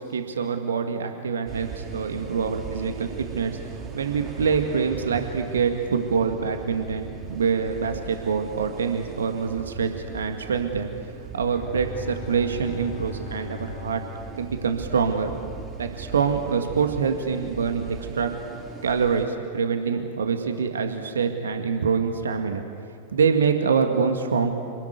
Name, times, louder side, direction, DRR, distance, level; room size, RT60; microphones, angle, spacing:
voice 1, 0.0-3.5 3.9-14.0 14.4-15.4 15.8-18.3 18.8-22.6 23.1-24.5, right 6 dB, 70° right, 6 dB, 2.0 m, -25 dB
sound 1, 1.4-19.3, right 6 dB, 25° right, 5.5 m, -39 dB
Bowed string instrument, 11.5-16.0, left 7 dB, 35° left, 2.6 m, -42 dB
28.0 x 20.5 x 9.5 m, 2.2 s
figure-of-eight pair, 90°, 0 cm